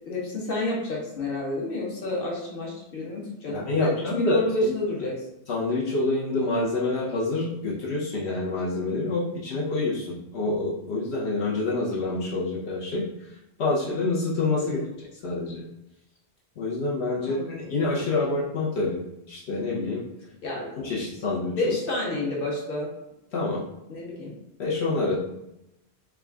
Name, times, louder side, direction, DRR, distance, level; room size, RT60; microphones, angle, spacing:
voice 1, 0.1-5.1 14.6-14.9 17.1-17.7 20.4-20.7 21.0-21.1 21.6-22.9 23.9-24.3, left 2 dB, 60° left, -4 dB, 1.2 m, -30 dB
voice 2, 3.5-4.7 5.5-13.3 13.6-15.6 16.6-19.0 19.3-20.0 20.8-21.7 23.3-23.6 24.6-25.2, left 3 dB, 80° left, -6 dB, 1.1 m, -27 dB
3.6 x 2.3 x 3.5 m, 0.87 s
omnidirectional pair, 1.1 m